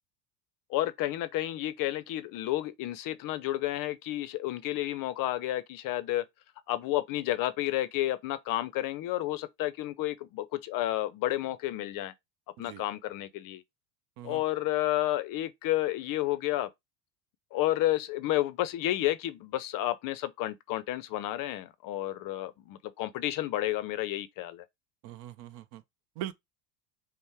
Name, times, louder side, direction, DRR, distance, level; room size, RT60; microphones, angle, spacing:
voice 1, 0.7-6.2 6.7-12.1 12.6-13.6 14.2-16.7 17.5-24.6, left 15 dB, 45° left, 0.5 m, -31 dB
voice 2, 25.0-25.8 26.2-26.3, right 12 dB, 55° right, 0.6 m, -41 dB
5.2 x 2.1 x 3.4 m
hypercardioid pair, 90°, 49 cm